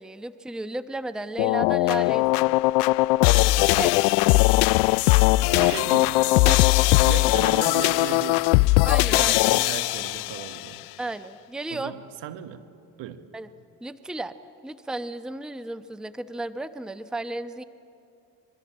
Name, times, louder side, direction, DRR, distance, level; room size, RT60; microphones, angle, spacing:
voice 1, 0.0-2.6 3.7-4.0 5.6-5.7 8.8-9.4 11.0-11.9 13.3-13.5 13.8-14.3 14.6-17.6, right 2 dB, ahead, 12 dB, 0.9 m, -33 dB
sound 1, 1.4-10.6, left 20 dB, 70° left, 0.5 m, -20 dB
voice 2, 5.5-8.5 9.1-10.8 11.7-12.7 13.0-13.3, right 10 dB, 60° right, 9 dB, 1.6 m, -36 dB
25.5 x 22.5 x 8.9 m, 2.6 s
hypercardioid pair, 60°, 47 cm